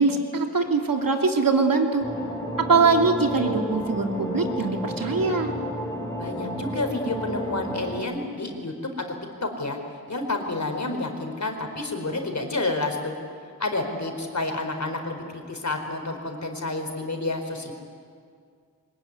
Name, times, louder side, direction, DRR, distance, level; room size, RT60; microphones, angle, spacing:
voice 1, 0.0-2.1 2.6-5.5, right 4 dB, 65° right, 3 dB, 2.9 m, -22 dB
sound 1, 2.0-8.0, equal, 10° left, 5.4 m, -32 dB
voice 2, 6.2-9.1 9.4-9.8 10.1-13.1 13.6-17.7, left 2 dB, 50° left, 4 dB, 4.4 m, -29 dB
22.5 x 21.0 x 9.7 m, 2.2 s
cardioid pair, 45°, 36 cm